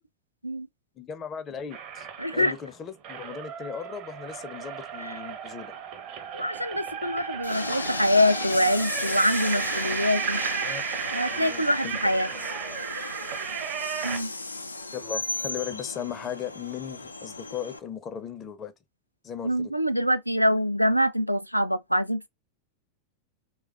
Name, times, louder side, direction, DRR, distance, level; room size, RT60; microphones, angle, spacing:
voice 1, 1.0-2.1 2.3-5.7 10.6-10.9 11.3-12.0 12.3-12.4 14.9-18.7 19.2-19.7, left 8 dB, 25° left, 0.5 m, -37 dB
sound 1, 1.7-2.6 3.0-14.2, right 7 dB, 40° right, 0.6 m, -34 dB
voice 2, 2.2-2.5 5.0-5.2 6.3-10.4 11.1-12.3 14.0-14.3 19.4-22.3, equal, 90° right, 0.3 m, -25 dB
Train, 7.4-17.8, left 2 dB, 80° left, 0.3 m, -35 dB
3.2 x 2.2 x 2.3 m
figure-of-eight pair, 90°, 0 cm